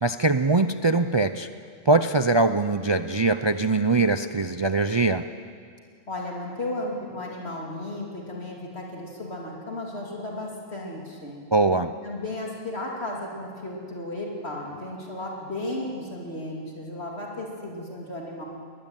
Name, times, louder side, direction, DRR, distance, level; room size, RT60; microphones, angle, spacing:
voice 1, 0.0-1.5 1.9-5.3 11.5-11.9, right 3 dB, 45° right, 10 dB, 0.3 m, -22 dB
voice 2, 6.1-11.4 12.0-18.4, left 1 dB, 55° left, -2 dB, 3.1 m, -34 dB
21.5 x 21.0 x 9.0 m, 2.2 s
omnidirectional pair, 1.3 m